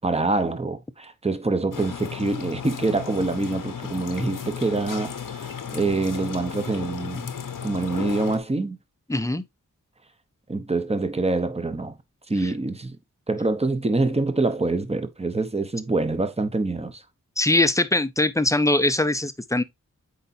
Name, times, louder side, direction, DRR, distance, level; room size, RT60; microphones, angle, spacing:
voice 1, 0.0-7.3 7.6-8.8 10.5-12.0 12.3-13.0 13.3-17.0, right 3 dB, 20° right, 0.9 m, -25 dB
sound 1, 1.7-8.4, left 7 dB, 85° left, 0.9 m, -34 dB
voice 2, 9.1-9.5 12.4-12.5 17.4-19.6, left 2 dB, 10° left, 0.6 m, -22 dB
8.0 x 4.6 x 2.7 m
wide cardioid pair, 75°, 32 cm